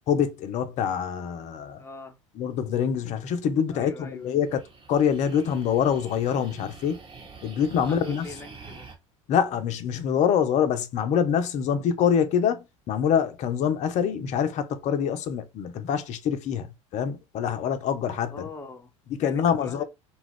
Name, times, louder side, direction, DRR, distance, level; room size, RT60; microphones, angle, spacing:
voice 1, 0.1-1.8 2.4-4.6 4.9-7.0 7.4-8.3 9.3-18.5 19.2-19.8, left 8 dB, 45° left, 0.6 m, -25 dB
voice 2, 1.8-2.2 3.7-4.3 7.8-8.9 18.3-18.9 19.2-19.8, left 3 dB, 15° left, 0.8 m, -42 dB
sound 1, 4.2-8.9, right 4 dB, 35° right, 1.2 m, -47 dB
2.4 x 2.3 x 3.4 m
hypercardioid pair, 70°, 17 cm